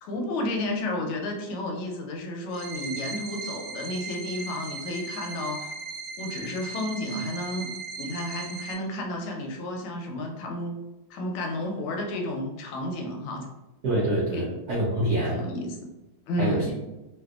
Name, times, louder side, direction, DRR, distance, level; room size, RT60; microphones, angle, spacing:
voice 1, 0.0-5.7 6.2-7.7 8.0-10.7 11.1-13.5 14.3-14.5 15.0-15.8 16.3-16.7, left 1 dB, 85° left, 1 dB, 1.5 m, -32 dB
sound 1, 2.5-8.7, right 4 dB, 90° right, 1.5 m, -37 dB
voice 2, 13.8-15.4 16.4-16.7, right 1 dB, 65° right, -7 dB, 0.9 m, -26 dB
3.5 x 2.5 x 2.3 m, 1.0 s
omnidirectional pair, 2.3 m